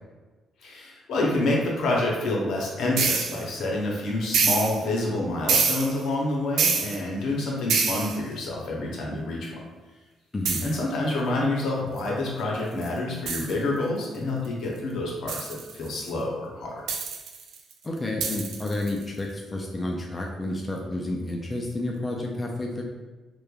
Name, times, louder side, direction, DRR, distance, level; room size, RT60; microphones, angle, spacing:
voice 1, 0.6-9.5 10.6-15.4 15.8-16.7, left 2 dB, 75° left, -3 dB, 0.7 m, -27 dB
sound 1, 3.0-3.4 4.3-4.8 5.5-6.0 6.6-7.0 7.7-8.2 10.4-10.7 12.0-12.1 12.8-12.9 13.3-13.5 15.3-16.1 16.9-17.7 18.2-19.0, right 5 dB, 80° right, 0.3 m, -25 dB
voice 2, 17.8-22.8, left 2 dB, 25° left, -1 dB, 0.3 m, -30 dB
3.0 x 2.1 x 2.3 m, 1.2 s
cardioid pair, 90°, 0 cm